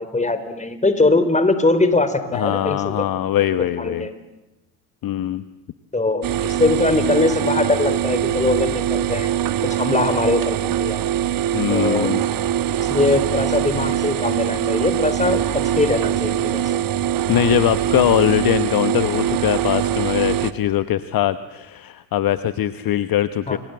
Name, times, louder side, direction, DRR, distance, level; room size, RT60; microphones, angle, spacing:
voice 1, 0.0-3.0 3.6-4.1 5.9-9.3 9.6-11.0 11.7-12.1 12.8-16.8 23.5-23.6, left 2 dB, 15° left, 11 dB, 3.9 m, -21 dB
voice 2, 2.3-4.1 5.0-5.4 11.5-12.2 17.3-23.6, left 12 dB, 45° left, 12 dB, 1.2 m, -21 dB
sound 1, 6.2-20.5, right 11 dB, 45° right, 1.4 m, -22 dB
29.5 x 23.5 x 7.8 m, 1.0 s
hypercardioid pair, 60°, 48 cm